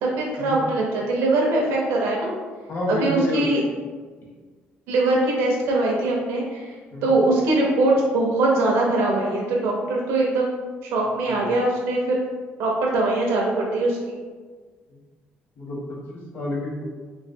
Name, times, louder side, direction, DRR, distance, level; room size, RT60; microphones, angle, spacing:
voice 1, 0.0-2.3 2.9-3.6 4.9-6.7 7.0-10.5 10.8-12.2 12.6-14.2, right 2 dB, 90° right, -2 dB, 0.7 m, -22 dB
voice 2, 2.7-3.6 6.9-7.1 11.2-11.5 14.9-15.0 15.6-16.8, left 1 dB, 60° left, -5 dB, 1.2 m, -29 dB
3.1 x 3.1 x 2.7 m, 1.5 s
cardioid pair, 110°, 4 cm